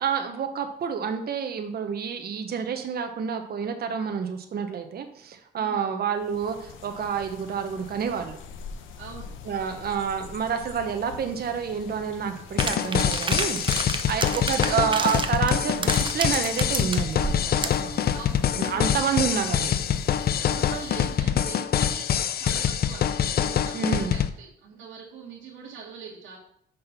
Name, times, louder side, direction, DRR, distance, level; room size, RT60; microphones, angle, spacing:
voice 1, 0.0-8.4 9.4-17.5 17.8-18.1 18.6-19.8 23.7-24.1, right 7 dB, 50° right, 6 dB, 0.9 m, -29 dB
voice 2, 5.6-5.9 9.0-9.8 14.1-14.8 18.1-18.9 19.2-19.4 20.4-22.1 22.4-23.0 23.4-26.4, right 6 dB, 80° right, -5 dB, 1.6 m, -43 dB
sound 1, 6.1-21.2, left 6 dB, 85° left, 0.8 m, -44 dB
sound 2, 12.6-24.3, left 9 dB, 50° left, 0.5 m, -25 dB
sound 3, 12.6-17.9, right 4 dB, 25° right, 0.7 m, -31 dB
5.7 x 5.2 x 5.7 m, 0.69 s
cardioid pair, 90°, 20 cm